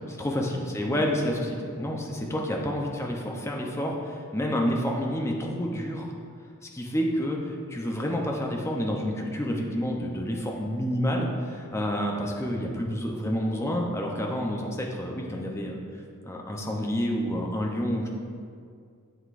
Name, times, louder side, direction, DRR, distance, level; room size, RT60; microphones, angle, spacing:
voice 1, 0.1-6.1 6.7-15.8 16.2-18.1, equal, 10° left, 0 dB, 0.7 m, -29 dB
8.1 x 7.8 x 2.6 m, 2.2 s
head